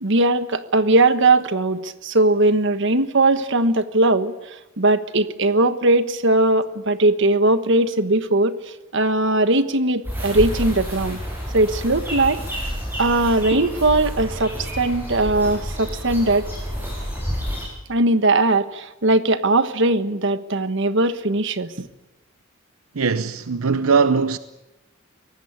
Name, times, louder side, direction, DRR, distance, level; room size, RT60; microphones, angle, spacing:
voice 1, 0.0-4.3 4.8-8.6 8.9-11.2 11.5-12.4 13.0-16.5 17.9-21.9, right 2 dB, 60° right, 1.3 m, -19 dB
sound 1, 10.0-17.7, equal, 10° right, 8.0 m, -29 dB
voice 2, 22.9-24.4, right 5 dB, 85° right, 0.8 m, -20 dB
23.5 x 18.5 x 9.7 m
head